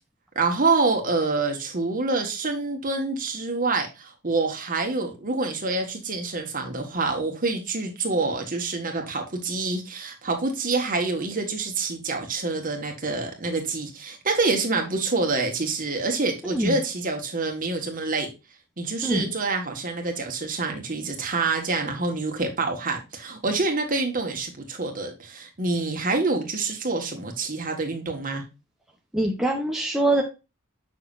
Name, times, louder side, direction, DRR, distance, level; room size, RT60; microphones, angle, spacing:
voice 1, 0.3-18.3 18.8-28.4, right 3 dB, 40° right, 1.5 m, -26 dB
voice 2, 16.4-16.8 19.0-19.3 29.1-30.2, right 1 dB, ahead, 0.7 m, -24 dB
7.1 x 5.9 x 2.5 m
head